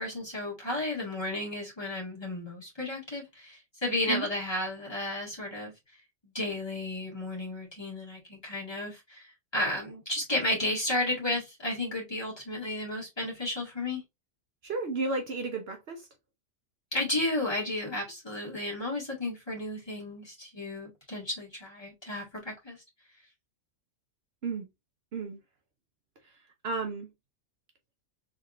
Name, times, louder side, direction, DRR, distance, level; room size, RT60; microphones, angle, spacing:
voice 1, 0.0-5.7 6.2-9.3 9.5-14.0 16.9-22.8, left 1 dB, 20° left, 2.0 m, -33 dB
voice 2, 14.6-16.1 24.4-24.7 25.1-25.4 26.2-26.3 26.6-27.1, right 3 dB, 60° right, 0.9 m, -33 dB
3.7 x 3.4 x 2.4 m
omnidirectional pair, 1.3 m